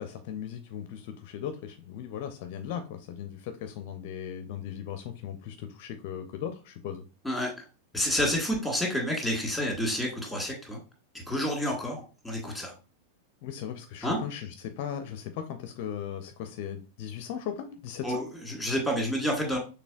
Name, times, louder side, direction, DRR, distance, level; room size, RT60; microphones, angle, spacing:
voice 1, 0.0-7.0 13.4-14.5 14.8-18.2, left 9 dB, 50° left, 8 dB, 0.5 m, -37 dB
voice 2, 7.2-7.6 7.9-10.8 11.1-12.7 14.0-14.2 18.0-19.6, equal, ahead, 0 dB, 1.8 m, -29 dB
6.0 x 3.3 x 2.4 m, 0.32 s
figure-of-eight pair, 90°, 0 cm